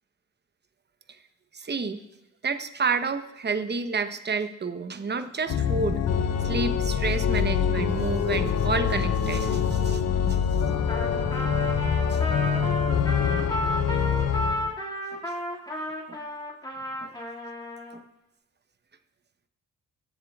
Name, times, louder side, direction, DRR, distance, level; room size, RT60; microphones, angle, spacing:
voice 1, 1.5-2.0 2.4-6.0 6.4-10.0 10.3-10.4 12.1-12.2 15.1-15.2 16.1-16.2 17.0-17.1 17.9-18.0, right 4 dB, 30° right, 9 dB, 0.9 m, -30 dB
Organ, 5.5-14.7, left 7 dB, 55° left, 0.7 m, -25 dB
Trumpet, 10.9-18.0, equal, 15° left, 2.1 m, -33 dB
16.0 x 7.4 x 2.4 m, 0.90 s
cardioid pair, 75°, 32 cm